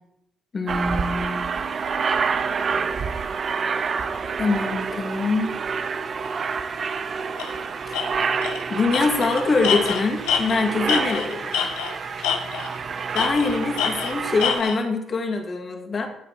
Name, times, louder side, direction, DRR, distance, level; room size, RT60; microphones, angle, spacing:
voice 1, 0.5-1.5 4.4-5.6 7.9-8.4 8.7-11.7 13.1-16.1, left 3 dB, 45° left, 3 dB, 2.2 m, -24 dB
Aircraft, 0.7-14.6, right 5 dB, 50° right, 0.7 m, -28 dB
Tools, 7.4-7.5 7.9-8.0 8.4-8.6 8.9-12.0 12.2-12.8 13.1-14.8, left 7 dB, 80° left, 1.2 m, -26 dB
14.0 x 8.6 x 3.1 m, 0.80 s
hypercardioid pair, 55°, 0 cm